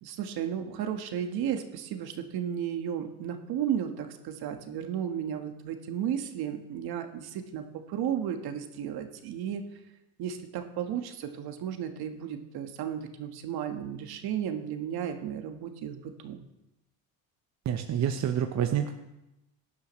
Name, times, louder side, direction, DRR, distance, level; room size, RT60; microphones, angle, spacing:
voice 1, 0.0-9.6 10.2-16.4, right 9 dB, 65° right, 6 dB, 1.5 m, -34 dB
voice 2, 17.6-18.9, right 9 dB, 45° right, 6 dB, 0.9 m, -28 dB
17.0 x 11.0 x 3.2 m, 0.92 s
supercardioid pair, 90°, 41 cm